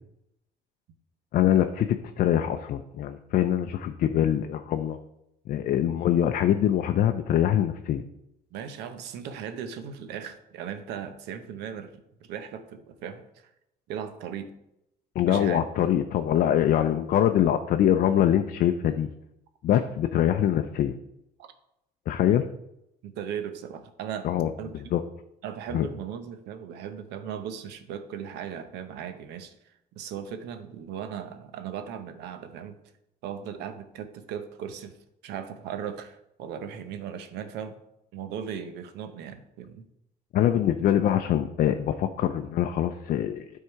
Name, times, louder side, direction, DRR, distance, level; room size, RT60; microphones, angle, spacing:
voice 1, 1.3-5.0 5.5-8.0 15.2-19.1 19.6-20.9 22.1-22.4 24.2-24.5 24.9-25.0 25.7-25.9 40.3-43.5, left 10 dB, 60° left, 7 dB, 0.5 m, -24 dB
voice 2, 8.5-12.0 12.3-13.5 13.9-14.5 15.3-15.6 21.4-21.5 23.0-24.3 24.6-24.8 25.4-32.8 33.2-35.0 35.2-37.8 38.1-39.9, right 8 dB, 85° right, 9 dB, 0.8 m, -37 dB
9.5 x 3.7 x 4.6 m, 0.83 s
cardioid pair, 110°, 17 cm